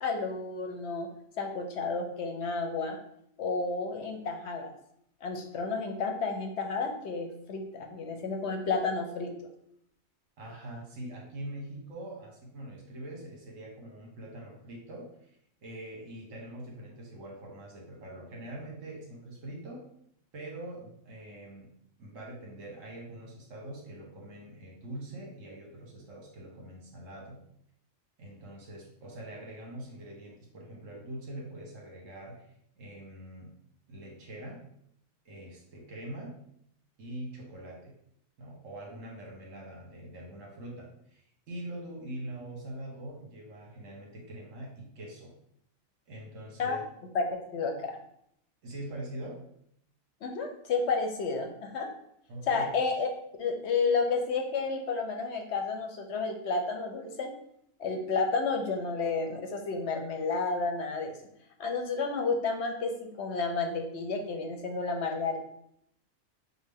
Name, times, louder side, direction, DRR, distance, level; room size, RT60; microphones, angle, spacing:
voice 1, 0.0-1.1 1.4-3.0 3.4-4.7 5.2-9.3 46.6-46.8 47.1-48.0 50.2-51.9 52.5-53.1 53.4-57.3 57.8-61.1 61.6-65.4, left 4 dB, 65° left, 4 dB, 0.8 m, -31 dB
voice 2, 10.4-15.3 15.6-19.8 20.3-21.7 22.0-27.4 28.2-32.5 32.8-33.5 33.9-34.6 35.2-36.4 37.0-37.9 38.4-45.3 46.1-46.8 48.6-49.4 52.3-52.7, right 1 dB, 70° right, -1 dB, 1.4 m, -43 dB
6.1 x 2.2 x 3.4 m, 0.72 s
omnidirectional pair, 1.4 m